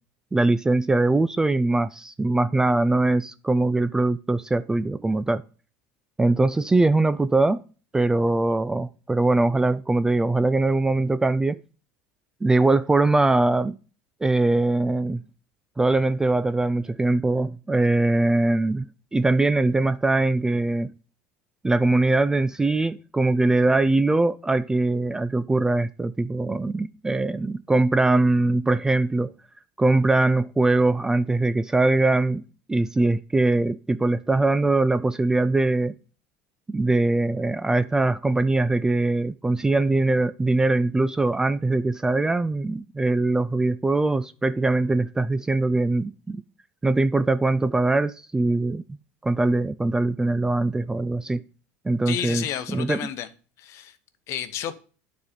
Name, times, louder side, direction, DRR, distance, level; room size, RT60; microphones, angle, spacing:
voice 1, 0.3-5.4 6.2-7.6 7.9-11.6 12.4-13.8 14.2-15.2 15.8-20.9 21.6-29.3 29.8-32.4 32.7-36.0 36.7-46.4 46.8-48.8 49.2-51.4 51.8-53.0, right 2 dB, 10° right, 0.3 m, -22 dB
voice 2, 52.1-53.3 53.6-54.0 54.3-54.7, left 10 dB, 50° left, 1.0 m, -31 dB
9.5 x 4.2 x 5.1 m
supercardioid pair, 125°, 6 cm